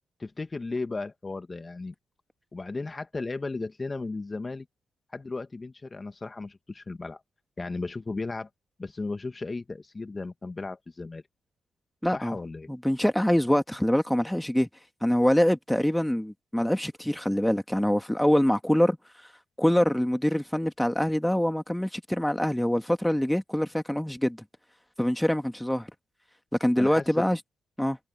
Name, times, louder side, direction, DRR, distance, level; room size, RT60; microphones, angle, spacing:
voice 1, 0.2-1.9 2.5-4.7 5.1-7.2 7.6-8.5 8.8-11.2 12.1-12.7 26.8-27.3, left 3 dB, 30° left, 2.3 m, -35 dB
voice 2, 12.0-12.4 12.7-14.7 15.0-19.0 19.6-24.4 25.0-25.9 26.6-27.4 27.8-28.0, equal, 5° left, 2.4 m, -24 dB
hypercardioid pair, 45°, 0 cm